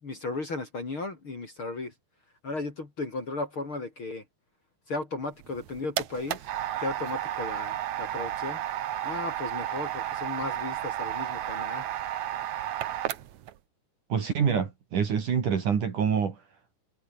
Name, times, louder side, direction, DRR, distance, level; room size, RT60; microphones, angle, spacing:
voice 1, 0.0-1.9 2.4-4.2 4.9-6.5 6.8-8.6 9.0-11.9, left 3 dB, 30° left, 3.6 m, -35 dB
sound 1, 5.4-13.5, right 12 dB, 70° right, 1.8 m, -32 dB
voice 2, 14.1-16.4, right 7 dB, 50° right, 3.8 m, -26 dB
omnidirectional pair, 5.1 m